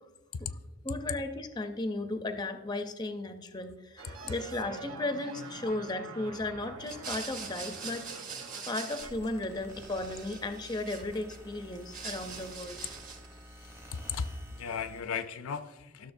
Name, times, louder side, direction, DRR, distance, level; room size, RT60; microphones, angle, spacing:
voice 1, 0.8-8.2 8.7-12.8, left 2 dB, 20° left, 8 dB, 0.4 m, -35 dB
sound 1, 4.0-9.1, right 4 dB, 75° right, 1.0 m, -46 dB
sound 2, 6.8-9.4 9.7-11.4 11.7-13.3, right 5 dB, 40° right, 1.1 m, -43 dB
sound 3, 9.0-15.0, equal, 15° right, 0.7 m, -50 dB
voice 2, 13.5-16.1, left 6 dB, 85° left, 12 dB, 0.4 m, -37 dB
12.5 x 6.4 x 2.6 m, 1.2 s
head